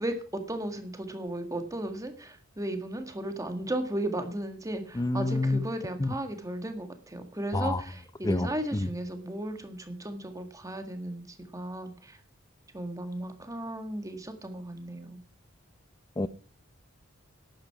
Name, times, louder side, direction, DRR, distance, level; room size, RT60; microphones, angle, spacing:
voice 1, 0.0-12.2 12.7-15.2, right 1 dB, 15° right, 7 dB, 1.7 m, -35 dB
voice 2, 4.9-5.7 6.0-6.1 7.5-7.8 8.2-8.9 16.2-16.3, left 2 dB, 20° left, 15 dB, 0.6 m, -28 dB
11.5 x 8.9 x 5.8 m, 0.43 s
head